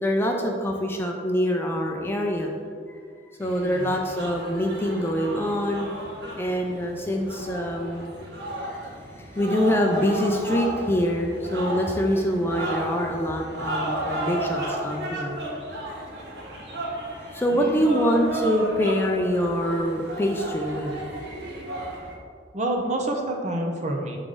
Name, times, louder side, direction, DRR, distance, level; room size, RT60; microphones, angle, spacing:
voice 1, 0.0-2.5 2.9-3.0 3.4-5.9 6.4-8.1 8.6-8.8 9.2-15.4 17.3-21.0, equal, 15° left, 1 dB, 0.4 m, -25 dB
sound 1, 3.4-22.1, right 1 dB, 65° right, 1.3 m, -34 dB
voice 2, 17.5-18.0 22.5-24.2, right 1 dB, 40° right, 1 dB, 0.7 m, -28 dB
6.3 x 4.9 x 3.8 m, 2.2 s
head